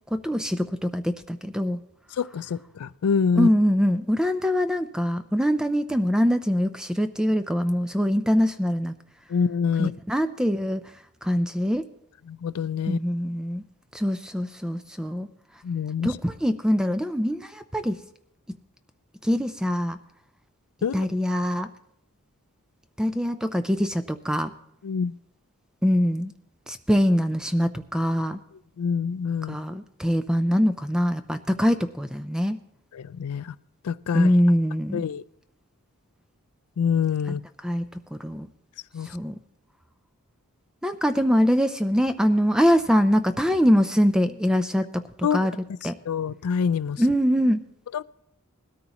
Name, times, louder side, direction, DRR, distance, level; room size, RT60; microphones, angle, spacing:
voice 1, 0.1-1.8 3.4-8.9 9.8-10.8 11.2-11.8 12.9-13.6 13.9-15.3 16.0-18.0 19.2-20.0 20.9-21.7 23.0-24.5 25.8-26.3 26.7-28.4 29.5-32.6 34.1-35.0 37.3-37.4 37.6-37.8 38.1-38.5 39.1-39.3 40.8-45.0 45.3-45.5 45.8-46.0 47.0-47.6, equal, 5° right, 10 dB, 0.4 m, -23 dB
voice 2, 2.2-3.5 9.3-9.9 12.3-13.0 15.6-16.1 20.8-21.1 24.8-25.1 28.8-29.6 32.9-33.5 33.8-34.3 34.9-35.2 36.8-37.4 38.9-39.1 45.2-45.5 46.1-47.0 47.9-48.0, left 6 dB, 80° left, 18 dB, 0.4 m, -26 dB
20.0 x 13.5 x 3.0 m, 0.75 s
head